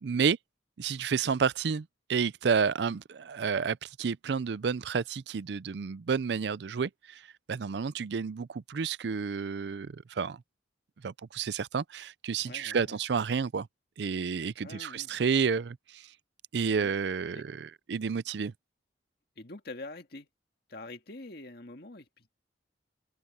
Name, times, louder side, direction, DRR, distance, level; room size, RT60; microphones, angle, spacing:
voice 1, 0.0-0.4 0.8-7.2 7.5-10.4 11.0-13.7 14.0-16.0 16.5-18.5, right 6 dB, 65° right, 0.4 m, -30 dB
voice 2, 12.4-13.0 14.6-15.1 16.6-16.9 17.3-17.5 19.4-20.3 20.7-22.3, left 2 dB, 55° left, 2.0 m, -45 dB
open air
head